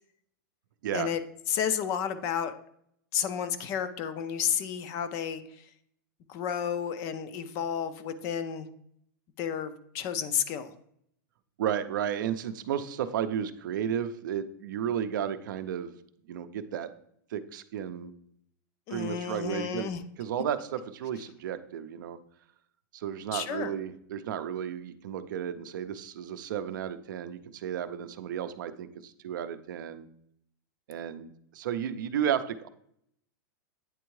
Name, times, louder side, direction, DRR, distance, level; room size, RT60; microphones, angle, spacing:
voice 1, 1.5-2.5 3.1-5.7 6.3-8.7 9.4-10.7 18.9-20.0 23.3-23.7, left 8 dB, 30° left, 12 dB, 0.3 m, -31 dB
voice 2, 11.6-15.9 16.3-16.9 17.3-18.1 18.9-19.9 20.2-22.2 22.9-30.1 30.9-32.7, right 9 dB, 70° right, 11 dB, 0.5 m, -33 dB
8.9 x 3.5 x 3.1 m, 0.70 s
supercardioid pair, 165°, 11 cm